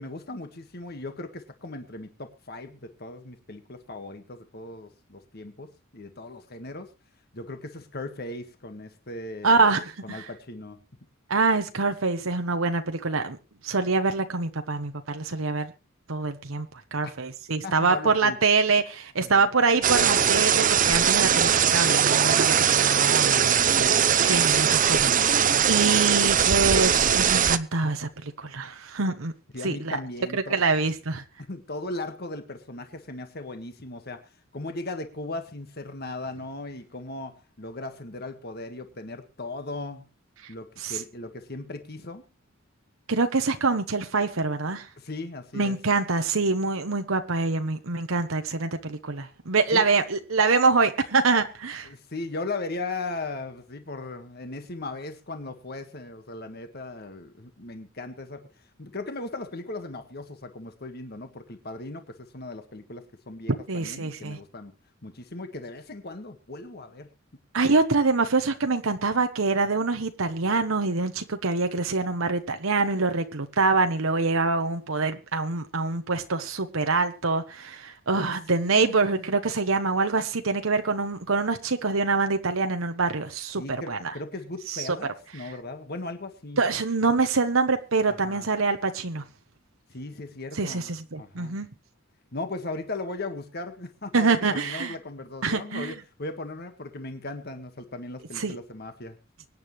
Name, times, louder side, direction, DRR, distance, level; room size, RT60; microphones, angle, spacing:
voice 1, 0.0-6.9 7.3-10.8 17.0-17.1 17.6-18.4 19.2-19.5 29.5-30.6 31.5-40.1 40.5-42.2 45.0-45.8 49.7-49.8 51.8-58.5 58.8-64.7 65.0-67.1 78.2-79.3 83.6-86.6 88.1-88.5 89.9-91.6 92.3-99.2, left 2 dB, 50° left, 1.7 m, -38 dB
voice 2, 9.4-10.3 11.3-13.4 13.6-15.7 16.1-29.3 29.6-30.0 30.3-31.2 40.4-40.5 40.8-41.0 43.1-44.9 45.5-51.9 63.7-64.4 67.5-84.1 84.7-84.9 86.6-89.2 90.5-91.7 94.1-94.9 95.4-95.9 98.3-98.6, right 4 dB, 85° right, 1.1 m, -25 dB
sound 1, 19.8-27.6, right 8 dB, 40° right, 0.7 m, -21 dB
24.0 x 9.7 x 3.2 m
head